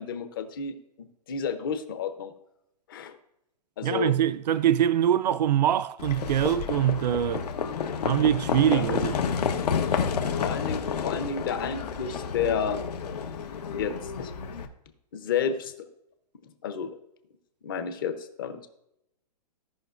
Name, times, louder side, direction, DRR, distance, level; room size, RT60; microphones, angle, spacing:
voice 1, 0.0-2.3 2.9-3.2 3.8-4.1 8.7-9.0 10.4-12.8 13.7-14.3 15.1-15.7 16.6-16.9 17.6-18.7, left 7 dB, 35° left, 0.8 m, -31 dB
voice 2, 3.8-7.4 8.0-9.1, right 10 dB, 85° right, 0.5 m, -23 dB
Livestock farm animals working animals, 6.0-14.6, left 6 dB, 75° left, 1.2 m, -30 dB
16.5 x 5.6 x 2.6 m
hypercardioid pair, 180°, 21 cm